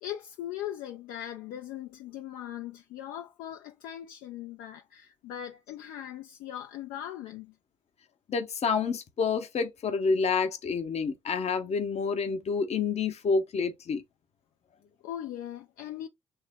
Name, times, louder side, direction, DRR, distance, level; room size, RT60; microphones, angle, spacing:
voice 1, 0.0-7.5 15.0-16.1, left 11 dB, 65° left, 0.4 m, -39 dB
voice 2, 8.3-14.0, left 5 dB, 45° left, 0.8 m, -28 dB
3.2 x 2.0 x 3.4 m
hypercardioid pair, 45°, 15 cm